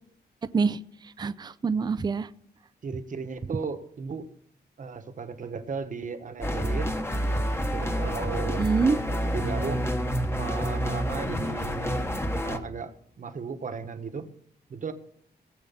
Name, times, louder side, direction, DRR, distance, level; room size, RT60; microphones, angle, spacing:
voice 1, 0.4-2.3 8.6-9.0, right 5 dB, 25° right, 13 dB, 0.4 m, -26 dB
voice 2, 2.8-4.3 4.8-6.9 7.7-9.9 10.4-12.1 12.4-14.3 14.7-14.9, right 5 dB, 45° right, 8 dB, 1.2 m, -36 dB
sound 1, 6.4-12.6, equal, 15° left, 1.0 m, -28 dB
17.0 x 7.9 x 5.7 m, 0.67 s
wide cardioid pair, 175°, 18 cm